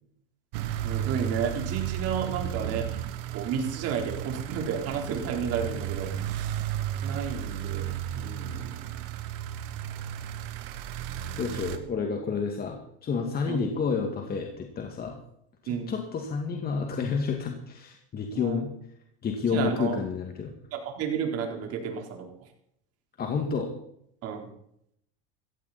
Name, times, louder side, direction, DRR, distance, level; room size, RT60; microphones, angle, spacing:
sound 1, 0.5-11.8, right 10 dB, 75° right, 1.8 m, -34 dB
voice 1, 0.8-3.0 3.3-6.6 7.0-9.0 13.5-13.6 15.7-15.9 18.3-18.6 19.5-20.0 20.7-22.3 24.2-24.5, right 7 dB, 55° right, 3 dB, 4.1 m, -32 dB
voice 2, 11.4-15.2 15.6-18.7 19.2-20.5 23.2-23.7, left 5 dB, 30° left, 3 dB, 2.2 m, -30 dB
16.5 x 15.5 x 4.3 m, 0.72 s
supercardioid pair, 115°, 30 cm